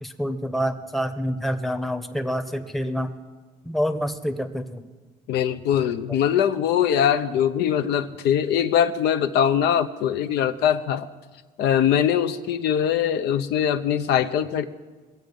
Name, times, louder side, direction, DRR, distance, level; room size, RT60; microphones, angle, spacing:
voice 1, 0.0-3.1 3.6-4.8 6.1-6.2, equal, ahead, 8 dB, 0.8 m, -27 dB
voice 2, 5.3-11.1 11.6-14.6, left 9 dB, 80° left, 9 dB, 0.7 m, -22 dB
21.5 x 7.7 x 5.3 m, 1.4 s
cardioid pair, 110°, 17 cm